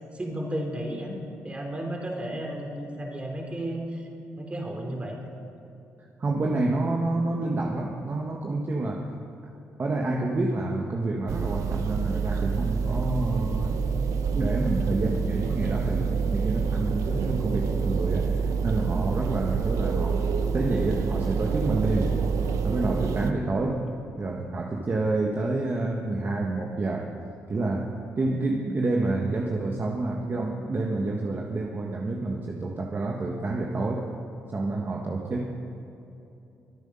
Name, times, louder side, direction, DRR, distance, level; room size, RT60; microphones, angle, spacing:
voice 1, 0.1-1.1 1.4-4.1 4.3-5.2, right 1 dB, 20° right, 1 dB, 3.3 m, -33 dB
voice 2, 6.2-9.1 9.8-13.9 14.3-18.3 18.6-20.3 20.5-22.2 22.6-23.8 24.2-27.1 27.5-34.1 34.5-35.5, right 2 dB, 40° right, 1 dB, 1.4 m, -28 dB
sound 1, 11.3-23.3, right 5 dB, 80° right, 0.8 m, -27 dB
23.0 x 9.2 x 5.5 m, 2.8 s
cardioid pair, 80°, 5 cm